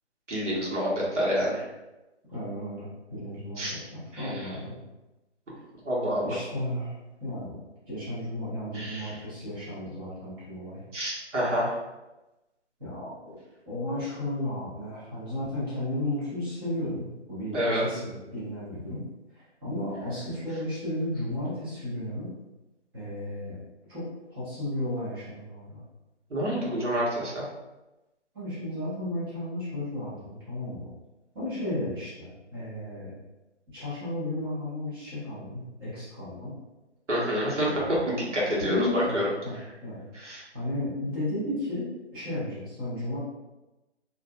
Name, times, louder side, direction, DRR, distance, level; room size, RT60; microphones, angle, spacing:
voice 1, 0.3-1.6 3.6-3.7 4.1-4.4 5.8-6.2 8.7-9.1 10.9-11.7 17.5-17.8 26.3-27.4 37.1-37.7 38.1-39.2 40.1-40.4, equal, 90° right, -5 dB, 1.2 m, -28 dB
voice 2, 2.3-4.8 6.2-6.9 7.2-7.6 7.9-10.8 12.8-13.1 13.7-19.0 19.3-22.3 22.9-23.6 23.9-24.0 24.3-25.8 28.3-30.9 31.3-33.1 33.7-36.5 37.6-37.9 38.6-40.0 40.5-41.9 42.1-43.2, left 1 dB, 20° right, -11 dB, 1.1 m, -34 dB
2.6 x 2.6 x 2.3 m, 1.0 s
figure-of-eight pair, 155°, 35 cm